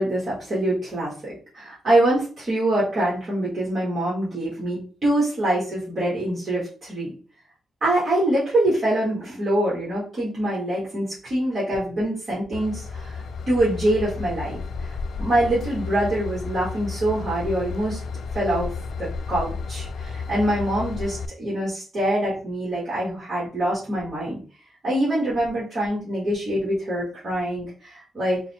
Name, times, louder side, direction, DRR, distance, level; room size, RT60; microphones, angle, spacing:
voice 1, 0.0-7.1 7.8-14.6 15.2-18.0 18.3-24.4 24.8-28.4, right 1 dB, 35° right, -7 dB, 1.4 m, -24 dB
Train / Engine, 12.5-21.3, left 4 dB, 60° left, 0.3 m, -32 dB
4.0 x 2.1 x 4.2 m, 0.39 s
wide cardioid pair, 170°, 0 cm